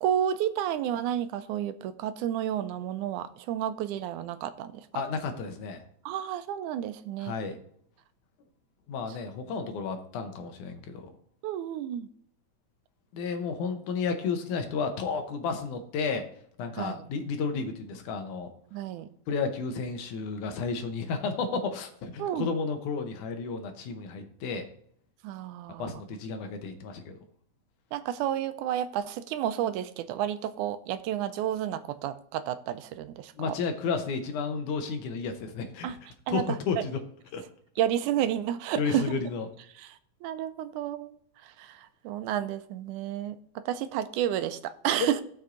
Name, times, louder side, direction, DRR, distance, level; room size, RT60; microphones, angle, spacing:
voice 1, 0.0-4.9 6.1-7.3 11.4-12.1 16.8-17.0 18.7-19.1 22.2-22.5 25.2-25.9 27.9-33.6 35.8-36.0 36.3-36.8 37.8-39.1 39.8-40.0 40.2-41.2 41.4-45.2, right 10 dB, 85° right, 11 dB, 2.1 m, -31 dB
voice 2, 4.9-5.8 7.2-7.6 8.9-11.2 13.1-16.3 16.6-18.5 19.3-24.7 25.8-27.2 33.4-36.0 36.3-37.0 37.3-37.4 38.8-39.5 45.0-45.1, left 5 dB, 80° left, 6 dB, 2.6 m, -32 dB
15.0 x 6.5 x 3.9 m, 0.65 s
omnidirectional pair, 3.5 m